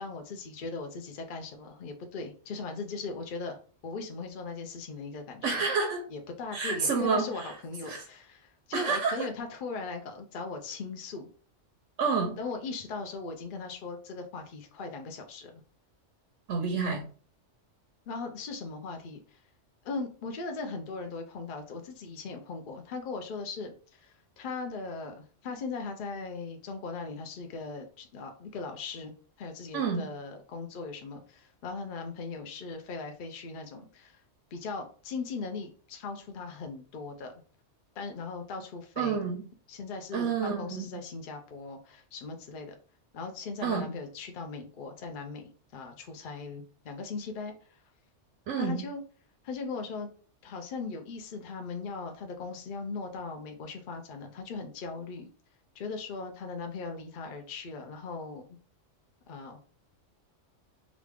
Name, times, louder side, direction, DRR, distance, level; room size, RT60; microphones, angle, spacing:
voice 1, 0.0-5.6 6.1-11.3 12.4-15.6 18.1-19.2 19.8-34.2 34.5-37.3 38.0-39.3 39.7-42.7 43.1-47.5 48.6-49.0 49.4-50.1 50.4-55.3 55.8-58.4 59.3-59.6, left 4 dB, 50° left, 4 dB, 0.7 m, -39 dB
voice 2, 5.4-6.0 6.5-7.5 7.8-8.0 8.7-9.3 12.0-12.4 16.5-17.1 29.7-30.1 39.0-39.4 40.1-41.0 43.6-43.9 48.5-48.8, right 5 dB, 85° right, 3 dB, 0.9 m, -29 dB
3.1 x 2.4 x 3.4 m, 0.40 s
omnidirectional pair, 1.3 m